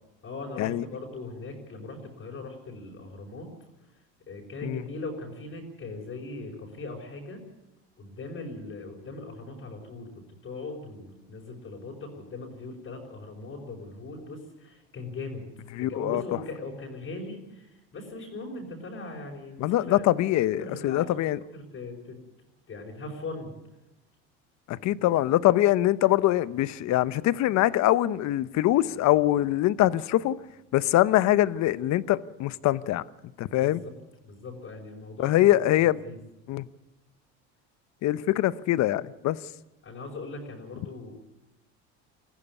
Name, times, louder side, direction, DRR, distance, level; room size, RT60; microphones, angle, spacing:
voice 1, 0.2-3.5 4.3-7.4 8.0-15.4 15.8-20.1 20.6-21.2 21.5-22.2 22.7-23.5 33.6-33.9 34.2-35.5 35.8-36.2 39.8-41.1, left 3 dB, 40° left, 5.6 m, -39 dB
voice 2, 15.7-16.2 19.6-21.4 24.7-30.4 30.7-33.0 33.4-33.8 35.2-36.0 36.5-36.7 38.0-39.4, left 14 dB, 55° left, 0.9 m, -23 dB
21.5 x 14.5 x 9.7 m
supercardioid pair, 95°, 33 cm